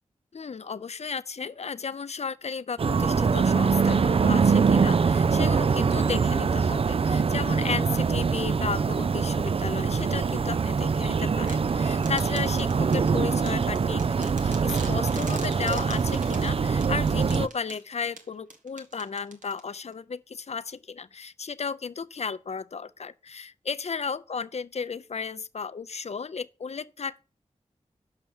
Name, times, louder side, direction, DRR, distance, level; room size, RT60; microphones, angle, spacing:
voice 1, 0.3-27.2, left 5 dB, 55° left, 0.6 m, -34 dB
sound 1, 2.8-17.5, right 5 dB, 45° right, 0.4 m, -24 dB
sound 2, 11.5-19.9, right 3 dB, 85° right, 1.6 m, -45 dB
6.6 x 5.8 x 7.2 m
cardioid pair, 45°, 13 cm